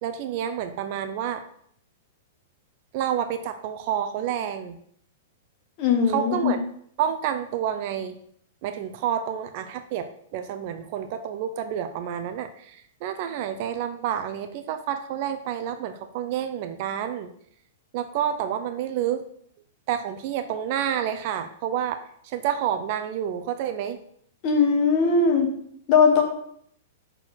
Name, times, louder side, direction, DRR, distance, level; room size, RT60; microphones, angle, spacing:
voice 1, 0.0-1.4 2.9-4.8 6.1-6.6 7.0-8.2 8.6-17.3 17.9-19.2 19.9-24.0, right 9 dB, 40° right, 8 dB, 0.5 m, -29 dB
voice 2, 5.8-6.5 24.4-25.5 25.9-26.2, left 5 dB, 30° left, 2 dB, 1.4 m, -19 dB
5.7 x 4.5 x 6.0 m, 0.66 s
supercardioid pair, 170°, 0 cm